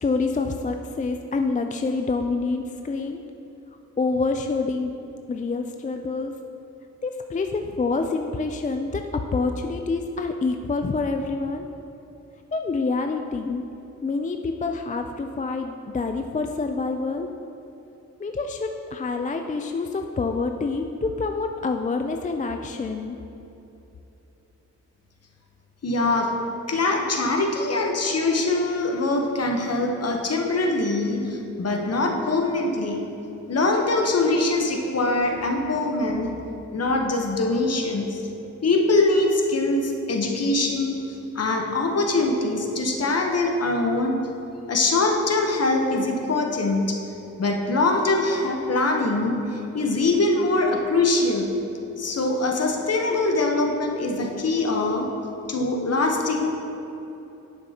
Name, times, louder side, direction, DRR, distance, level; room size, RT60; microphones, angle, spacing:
voice 1, 0.0-3.2 4.0-4.9 5.3-6.3 7.0-9.0 9.3-11.7 12.5-13.6 14.0-17.3 18.2-23.2, left 3 dB, 25° left, 5 dB, 0.4 m, -27 dB
voice 2, 25.8-26.4 26.7-33.1 33.5-36.3 36.7-38.2 38.6-44.2 44.7-47.0 47.4-51.5 52.0-55.1 55.5-56.5, left 2 dB, 50° left, 2 dB, 1.0 m, -23 dB
11.0 x 6.1 x 2.9 m, 2.9 s
cardioid pair, 55°, 31 cm